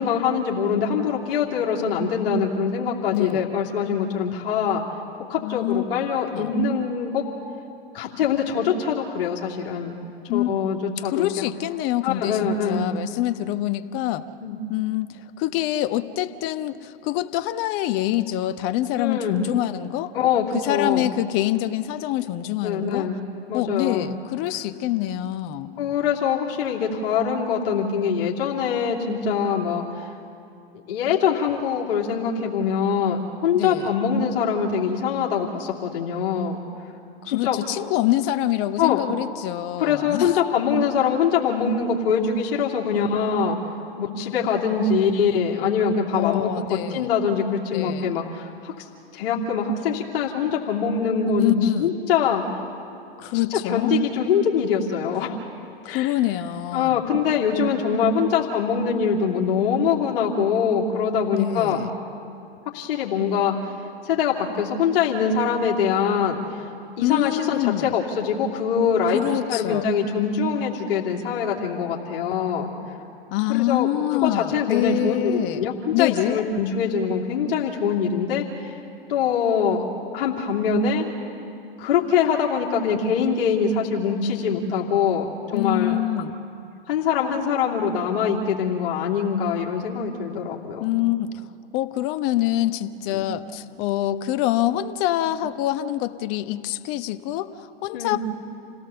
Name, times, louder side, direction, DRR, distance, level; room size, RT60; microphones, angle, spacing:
voice 1, 0.0-4.8 5.3-7.2 7.9-10.0 10.3-11.4 12.0-12.9 14.4-14.6 19.0-19.4 20.1-21.1 22.6-23.2 23.5-24.1 25.8-30.1 30.9-36.6 37.2-37.6 38.8-39.0 39.8-43.6 44.0-48.9 49.1-52.4 53.5-55.4 55.9-56.1 56.7-61.8 62.7-63.5 64.0-66.4 67.0-72.7 73.5-78.4 79.1-79.8 80.1-81.1 81.8-86.0 86.9-90.9 93.1-93.2 97.9-98.2, left 6 dB, 65° left, -3 dB, 2.9 m, -23 dB
voice 2, 3.1-3.5 5.4-5.8 6.3-6.6 10.3-10.5 11.0-14.3 14.7-20.1 20.5-23.1 23.5-25.8 33.5-33.9 37.2-40.4 46.1-47.1 47.7-48.1 51.4-51.9 53.2-53.9 55.8-57.0 61.3-61.9 67.0-67.9 69.1-69.8 73.3-75.6 75.9-76.4 85.5-86.4 90.8-91.5 91.7-98.2, left 14 dB, 45° left, 11 dB, 1.1 m, -25 dB
28.5 x 17.0 x 7.1 m, 2.6 s
hypercardioid pair, 100°, 30 cm